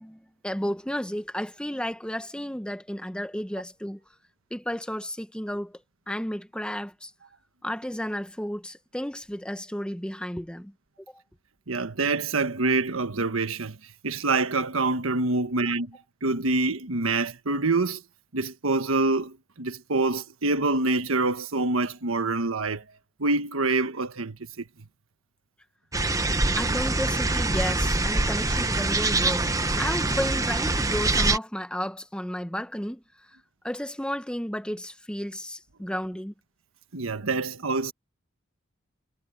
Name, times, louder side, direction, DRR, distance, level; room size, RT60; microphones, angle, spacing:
voice 1, 0.0-4.0 4.5-5.8 6.1-7.1 7.6-10.7 11.1-11.2 26.6-29.5 29.8-33.0 33.6-36.3, equal, 5° left, 1.1 m, -32 dB
voice 2, 11.7-13.8 14.0-18.0 18.3-22.8 23.2-24.6 36.9-37.9, right 3 dB, 85° right, 1.4 m, -26 dB
sound 1, 25.9-31.4, right 2 dB, 15° right, 1.1 m, -24 dB
head